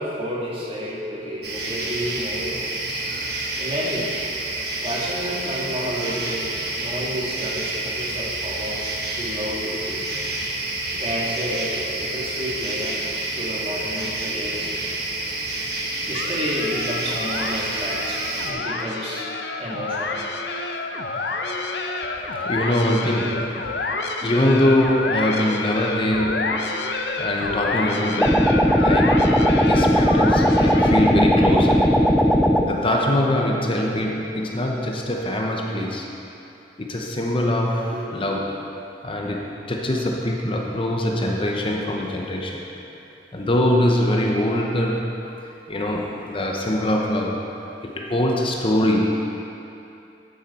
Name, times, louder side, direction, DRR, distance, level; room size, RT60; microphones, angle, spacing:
voice 1, 0.0-2.6 3.6-4.1 4.8-10.0 10.9-15.1 16.0-19.3 19.6-20.2 37.9-38.2 39.6-40.1 45.2-45.3, equal, 35° right, -4 dB, 1.8 m, -30 dB
sound 1, 1.4-18.5, right 2 dB, 65° right, 1.4 m, -29 dB
voice 2, 3.0-3.4 6.0-6.3 22.0-23.7 24.2-26.7 27.2-29.4 29.7-32.2 32.7-36.1 36.8-38.6 39.0-42.7 43.3-45.1 45.7-47.5 47.8-49.4, left 1 dB, 30° left, 0 dB, 0.8 m, -23 dB
sound 2, 16.1-31.3, left 3 dB, 70° left, 0.7 m, -29 dB
sound 3, 28.2-32.7, equal, ahead, 0.4 m, -17 dB
11.5 x 9.1 x 4.2 m, 2.8 s
head